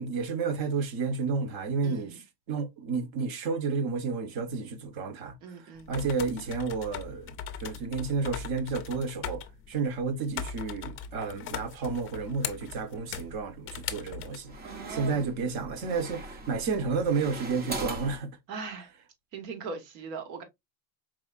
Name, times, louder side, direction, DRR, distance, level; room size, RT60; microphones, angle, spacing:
voice 1, 0.0-5.4 5.6-14.5 14.9-18.3, right 4 dB, 45° right, 1.0 m, -31 dB
voice 2, 1.8-2.2 5.4-6.0 14.6-15.3 18.5-18.9 19.3-20.4, right 4 dB, 75° right, 1.5 m, -40 dB
sound 1, 5.8-14.4, left 8 dB, 25° left, 0.4 m, -40 dB
sound 2, 13.0-13.6 14.2-18.2, right 2 dB, 20° right, 0.5 m, -41 dB
4.9 x 3.3 x 2.4 m
supercardioid pair, 140°, 49 cm